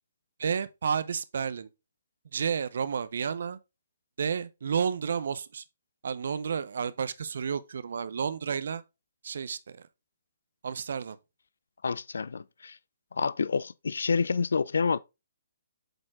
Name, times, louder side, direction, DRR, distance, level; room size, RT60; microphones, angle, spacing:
voice 1, 0.4-1.7 2.3-3.6 4.2-5.6 6.0-8.8 9.2-9.8 10.6-11.2, right 6 dB, 65° right, 0.7 m, -31 dB
voice 2, 11.8-12.8 13.1-15.0, left 5 dB, 75° left, 0.4 m, -28 dB
7.9 x 4.2 x 3.6 m
figure-of-eight pair, 135°, 0 cm